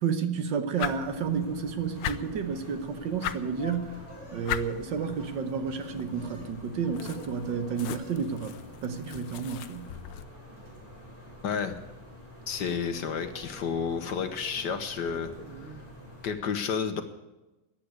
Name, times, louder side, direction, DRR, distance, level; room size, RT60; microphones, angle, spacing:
voice 1, 0.0-4.0 4.3-9.9, right 6 dB, 65° right, 9 dB, 1.6 m, -31 dB
sound 1, 0.7-10.3, left 11 dB, 80° left, 1.6 m, -40 dB
sound 2, 0.8-16.3, equal, 15° right, 7.2 m, -47 dB
sound 3, 3.2-4.5 4.8-5.3 5.6-6.5 6.8-7.4 7.7-8.2, right 1 dB, 35° right, 4.7 m, -52 dB
voice 2, 11.4-11.8 12.5-15.3 15.6-15.7 16.2-17.0, left 6 dB, 60° left, 8 dB, 1.5 m, -31 dB
14.5 x 10.0 x 8.1 m, 1.0 s
omnidirectional pair, 2.3 m